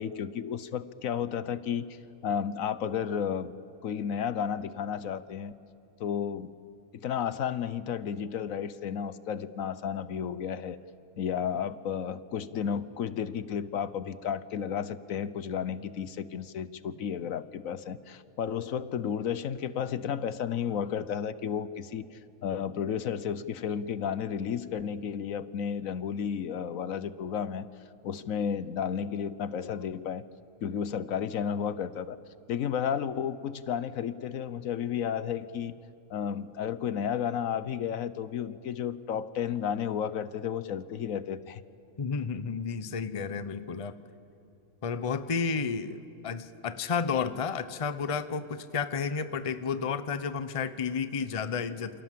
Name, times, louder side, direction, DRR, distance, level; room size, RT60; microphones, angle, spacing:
voice 1, 0.0-2.0 2.2-3.5 3.8-5.5 6.0-6.5 6.9-10.8 11.2-22.0 22.4-27.7 28.0-30.2 30.6-32.2 32.5-35.7 36.1-41.6, left 8 dB, 70° left, 15 dB, 1.2 m, -32 dB
voice 2, 42.0-44.0 44.8-52.0, left 5 dB, 30° left, 12 dB, 0.8 m, -32 dB
28.5 x 26.0 x 7.6 m, 2.9 s
omnidirectional pair, 1.5 m